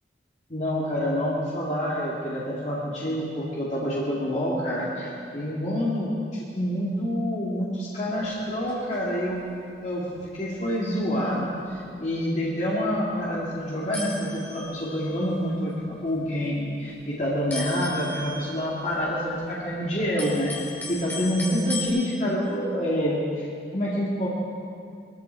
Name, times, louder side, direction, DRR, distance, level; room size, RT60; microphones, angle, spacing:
voice 1, 0.5-9.5 9.8-20.5 20.9-23.5 23.7-24.3, equal, 40° left, -6 dB, 2.2 m, -27 dB
sound 1, 8.1-9.1 9.4-9.6 10.2-10.4 10.7-10.8 11.2-11.3 11.6-11.8 12.6-12.7 13.4-13.5 13.9-15.3 16.1-16.5 16.8-17.0 17.5-19.5 19.9-21.9, left 2 dB, 10° left, 2.7 m, -37 dB
20.5 x 14.0 x 4.6 m, 2.3 s
head